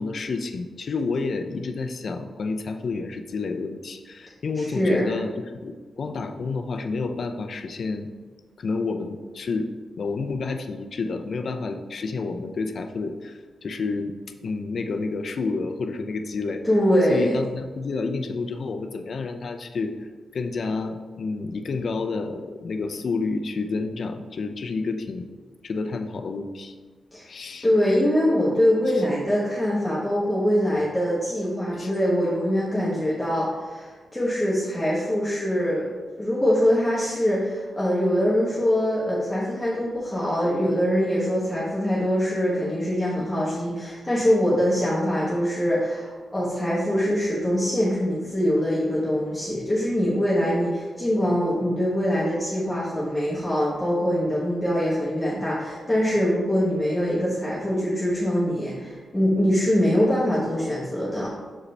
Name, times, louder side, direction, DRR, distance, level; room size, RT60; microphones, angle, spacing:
voice 1, 0.0-8.1 8.6-9.7 10.0-14.1 14.4-16.6 17.1-25.3 25.6-26.8 27.3-27.7 31.8-31.9, left 4 dB, 55° left, 6 dB, 0.4 m, -29 dB
voice 2, 4.6-5.1 16.6-17.4 27.1-27.3 27.6-35.9 36.2-61.3, equal, 10° left, -8 dB, 1.1 m, -23 dB
6.6 x 4.9 x 3.2 m, 1.4 s
wide cardioid pair, 135°, 0 cm